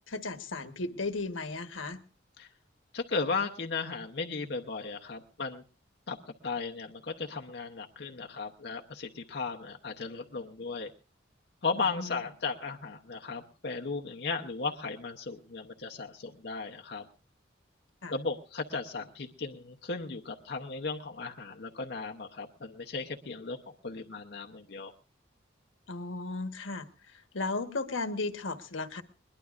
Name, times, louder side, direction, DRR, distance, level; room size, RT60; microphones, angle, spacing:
voice 1, 0.0-2.0 12.0-12.1 18.0-18.1 25.9-26.9 27.3-29.0, left 3 dB, 90° left, 9 dB, 1.2 m, -35 dB
voice 2, 2.9-5.6 6.1-6.2 6.4-10.9 11.6-17.0 18.1-24.9, left 4 dB, 60° left, 2 dB, 0.8 m, -36 dB
21.5 x 21.0 x 2.5 m, 0.36 s
head